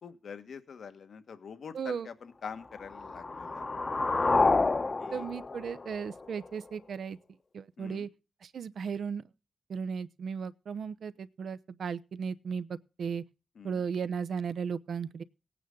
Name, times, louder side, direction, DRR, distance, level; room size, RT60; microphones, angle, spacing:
voice 1, 0.0-3.6 5.0-5.3 7.8-8.1 13.5-13.8, left 6 dB, 70° left, 1.5 m, -45 dB
voice 2, 1.7-2.1 5.1-7.2 7.5-8.1 8.4-9.2 9.7-13.2 13.6-15.2, right 6 dB, 70° right, 0.8 m, -36 dB
sound 1, 2.7-6.7, left 3 dB, 35° left, 1.0 m, -29 dB
18.0 x 9.2 x 3.8 m
cardioid pair, 80°, 0 cm